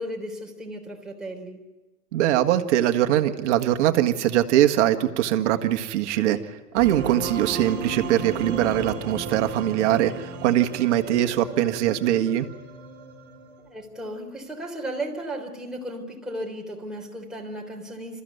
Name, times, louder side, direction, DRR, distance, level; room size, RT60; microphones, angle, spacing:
voice 1, 0.0-1.6 13.6-18.2, right 1 dB, ahead, -1 dB, 3.7 m, -35 dB
voice 2, 2.1-12.5, right 12 dB, 50° right, 7 dB, 1.7 m, -22 dB
sound 1, 6.8-13.8, right 3 dB, 25° right, 3.8 m, -35 dB
27.0 x 14.5 x 9.4 m, 1.1 s
hypercardioid pair, 115°, 46 cm